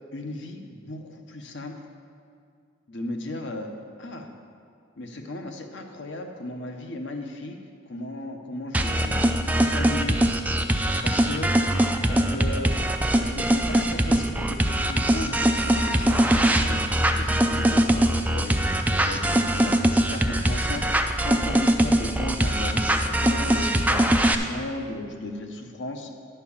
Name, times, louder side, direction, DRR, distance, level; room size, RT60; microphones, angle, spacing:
voice 1, 0.1-1.7 2.9-3.7 4.0-4.3 5.0-7.6 7.9-10.2 10.8-11.5 12.1-12.9 13.2-26.1, left 2 dB, 60° left, 4 dB, 0.9 m, -36 dB
sound 1, 8.7-24.4, right 1 dB, 10° right, 0.3 m, -22 dB
11.0 x 4.5 x 7.0 m, 2.2 s
head